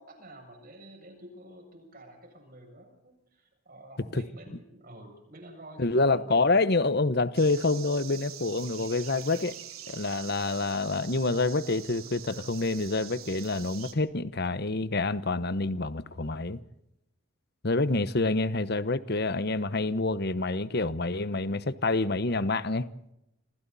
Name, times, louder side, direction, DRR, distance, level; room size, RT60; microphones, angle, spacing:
voice 1, 0.0-6.5, right 1 dB, 40° right, 7.4 m, -49 dB
voice 2, 5.8-9.6 9.9-16.6 17.6-22.9, left 3 dB, 50° left, 1.0 m, -27 dB
sound 1, 7.3-13.9, right 11 dB, 80° right, 3.0 m, -44 dB
28.0 x 27.5 x 4.2 m
head